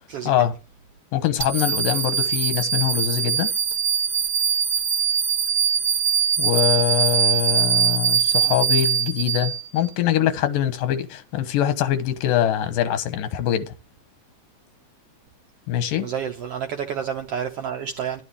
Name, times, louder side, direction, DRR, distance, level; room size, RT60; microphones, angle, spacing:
voice 1, 1.1-3.5 6.4-13.7 15.7-16.1, left 11 dB, 85° left, 2.7 m, -23 dB
sound 1, 1.4-9.9, right 7 dB, 30° right, 1.3 m, -22 dB
voice 2, 16.0-18.2, right 8 dB, 75° right, 1.4 m, -29 dB
11.5 x 10.0 x 3.5 m
omnidirectional pair, 3.8 m